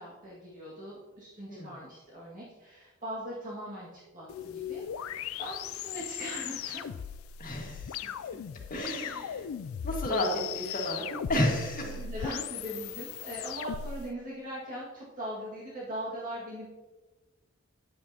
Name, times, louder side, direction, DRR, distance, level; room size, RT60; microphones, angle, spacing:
voice 1, 0.0-7.0 10.6-11.0 11.3-11.5 12.0-16.7, equal, 40° right, -7 dB, 1.9 m, -40 dB
sound 1, 4.3-14.0, left 9 dB, 90° left, 0.3 m, -38 dB
voice 2, 7.4-8.1 8.7-9.5 9.8-10.3 10.5-12.3, left 1 dB, 45° left, -1 dB, 1.7 m, -32 dB
9.1 x 8.7 x 2.8 m, 1.2 s
head